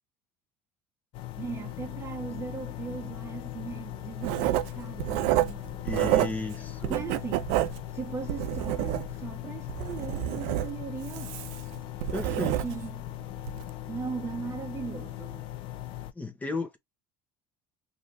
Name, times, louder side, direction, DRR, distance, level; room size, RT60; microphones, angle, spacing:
sound 1, 1.1-16.1, left 14 dB, 60° left, 0.5 m, -39 dB
voice 1, 1.4-6.4 6.9-7.5 7.9-11.4 12.1-13.1 13.9-15.5, right 6 dB, 25° right, 0.8 m, -39 dB
Writing, 4.2-6.5 6.8-9.3 9.7-13.0 13.4-13.6, right 14 dB, 75° right, 0.5 m, -29 dB
voice 2, 5.8-7.0 12.1-12.6 16.1-16.8, left 3 dB, 15° left, 1.1 m, -34 dB
4.9 x 2.8 x 2.9 m
supercardioid pair, 115°, 10 cm